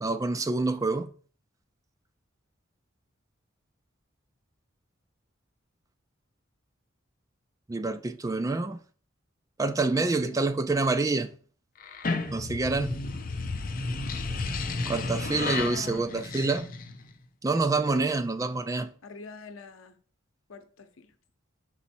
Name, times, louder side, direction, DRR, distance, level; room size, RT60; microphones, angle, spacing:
voice 1, 0.0-1.1 7.7-8.8 9.6-11.3 12.3-13.0 14.9-16.6 17.4-18.9, right 3 dB, 15° right, 0.3 m, -27 dB
voice 2, 9.9-10.4 15.1-16.5 17.9-18.2 19.0-20.0 20.5-21.1, left 4 dB, 85° left, 0.7 m, -45 dB
sound 1, 11.8-17.1, left 3 dB, 45° left, 0.6 m, -33 dB
6.1 x 4.2 x 4.3 m
head